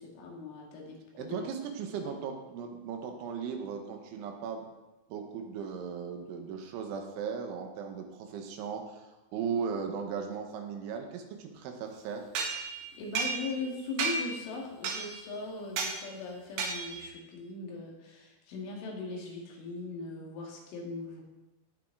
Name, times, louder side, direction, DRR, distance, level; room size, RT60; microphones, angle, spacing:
voice 1, 0.0-1.4 12.9-21.2, left 3 dB, 85° left, -1 dB, 4.4 m, -39 dB
voice 2, 1.2-4.6 5.1-9.0 9.3-12.3, right 6 dB, 85° right, 4 dB, 3.6 m, -37 dB
sound 1, 12.3-13.7 14.0-14.4 14.8-15.3 15.8-16.0 16.6-17.1, right 4 dB, 65° right, 3.1 m, -33 dB
17.5 x 6.3 x 3.8 m, 1.0 s
omnidirectional pair, 5.5 m